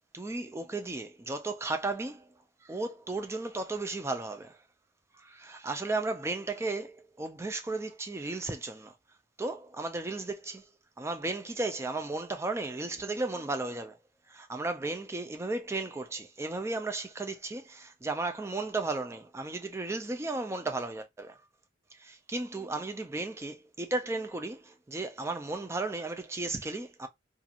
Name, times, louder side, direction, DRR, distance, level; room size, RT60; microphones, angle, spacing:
voice 1, 0.1-2.3 2.6-4.6 5.1-8.9 9.4-10.7 11.0-14.0 14.3-21.4 21.9-27.1, right 2 dB, 15° right, 0.3 m, -35 dB
2.8 x 2.5 x 2.4 m
head